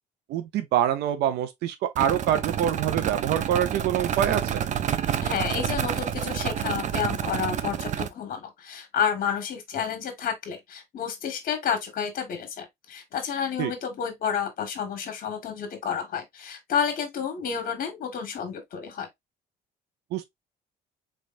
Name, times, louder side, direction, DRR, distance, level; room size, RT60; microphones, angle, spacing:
voice 1, 0.3-4.6 13.6-13.7 20.1-20.3, right 10 dB, 80° right, 0.7 m, -25 dB
sound 1, 2.0-8.1, right 9 dB, 45° right, 0.6 m, -28 dB
voice 2, 5.2-19.1, left 7 dB, 55° left, 1.6 m, -30 dB
3.8 x 3.4 x 2.5 m
cardioid pair, 110°, 17 cm